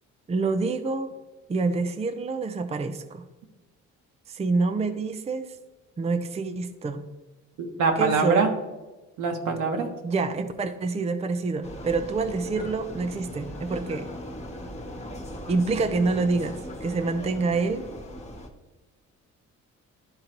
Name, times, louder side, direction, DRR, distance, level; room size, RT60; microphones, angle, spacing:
voice 1, 0.3-1.1 1.5-3.2 4.3-5.5 6.0-7.0 8.0-8.5 10.0-14.1 15.5-17.9, right 3 dB, 20° right, 8 dB, 0.5 m, -27 dB
voice 2, 7.6-8.5 9.2-9.9, right 4 dB, 80° right, 3 dB, 1.3 m, -24 dB
Vehicle, 11.6-18.5, equal, 20° left, 1.1 m, -39 dB
11.5 x 3.8 x 2.9 m, 1.2 s
cardioid pair, 90°, 30 cm